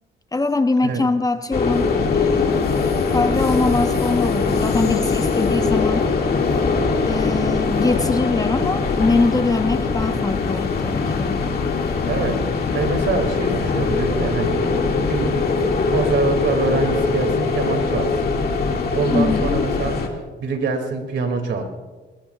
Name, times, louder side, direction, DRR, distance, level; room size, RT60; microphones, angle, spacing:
voice 1, 0.3-2.5 3.1-6.1 7.1-11.4 19.1-19.5, left 3 dB, 20° left, 9 dB, 0.8 m, -22 dB
sound 1, 1.5-20.1, left 4 dB, 50° left, 2.2 m, -21 dB
voice 2, 12.1-12.5 12.7-15.4 15.9-18.3 18.6-20.0 20.4-21.6, right 4 dB, 65° right, 5 dB, 2.6 m, -25 dB
21.0 x 20.0 x 2.4 m, 1.3 s
cardioid pair, 90°, 20 cm